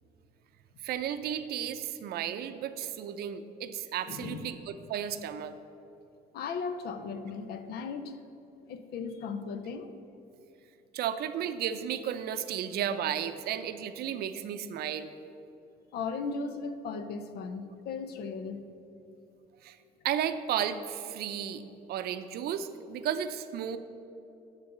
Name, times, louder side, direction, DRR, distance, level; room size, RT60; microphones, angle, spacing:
voice 1, 0.8-5.5 10.9-15.1 19.6-19.8 20.0-21.6 21.9-23.8, right 9 dB, 70° right, 10 dB, 0.6 m, -33 dB
voice 2, 4.1-4.5 6.3-8.2 8.7-9.9 15.9-18.7, left 5 dB, 70° left, 9 dB, 0.7 m, -37 dB
11.0 x 4.1 x 6.7 m, 2.8 s
cardioid pair, 110°, 17 cm